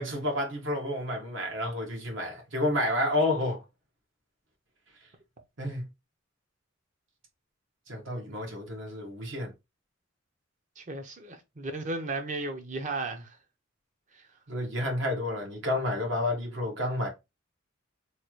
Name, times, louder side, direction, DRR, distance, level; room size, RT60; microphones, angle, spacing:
voice 1, 0.0-3.6 5.6-5.8 7.9-9.5 14.5-17.1, left 1 dB, 70° right, 1.2 m, -30 dB
voice 2, 10.8-13.4, right 2 dB, 40° right, 0.8 m, -35 dB
3.2 x 2.4 x 4.4 m
head